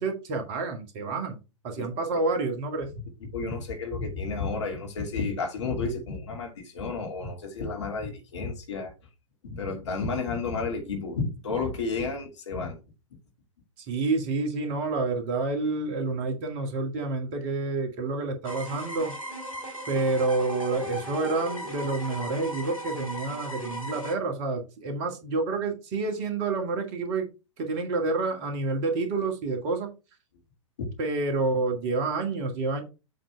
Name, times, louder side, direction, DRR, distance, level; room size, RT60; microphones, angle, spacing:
voice 1, 0.0-1.4 1.6-2.9 13.8-19.1 19.9-27.3 27.6-29.9 31.0-32.8, right 3 dB, 35° right, 1.9 m, -28 dB
voice 2, 3.3-8.9 9.4-12.8 30.8-30.9, left 4 dB, 60° left, 2.7 m, -31 dB
sound 1, 18.4-24.1, equal, 85° left, 2.4 m, -37 dB
7.7 x 4.0 x 4.6 m
figure-of-eight pair, 110°, 17 cm